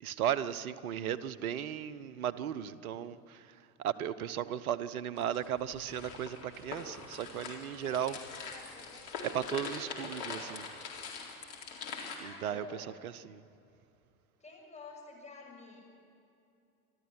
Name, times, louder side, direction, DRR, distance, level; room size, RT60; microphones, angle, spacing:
voice 1, 0.0-8.2 9.2-10.7 12.2-12.6 13.0-13.4, right 10 dB, 75° right, 15 dB, 1.0 m, -36 dB
sound 1, 5.2-12.2, left 5 dB, 70° left, 4.1 m, -43 dB
voice 2, 7.8-9.4 11.9-13.0 14.4-15.8, left 3 dB, 15° left, -1 dB, 6.4 m, -51 dB
27.5 x 13.0 x 9.7 m, 2.6 s
figure-of-eight pair, 75°, 44 cm